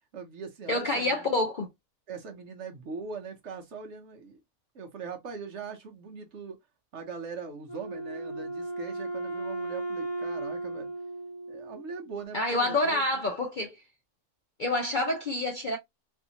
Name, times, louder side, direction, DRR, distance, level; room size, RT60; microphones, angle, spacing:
voice 1, 0.1-1.3 2.1-4.4 4.7-6.6 6.9-10.9 11.5-13.3, right 5 dB, 60° right, 0.9 m, -41 dB
voice 2, 0.7-1.7 12.3-13.8 14.6-15.8, left 2 dB, 50° left, 0.6 m, -27 dB
Wind instrument woodwind instrument, 7.7-12.2, right 2 dB, 75° left, 1.4 m, -36 dB
3.5 x 2.6 x 2.7 m
omnidirectional pair, 1.6 m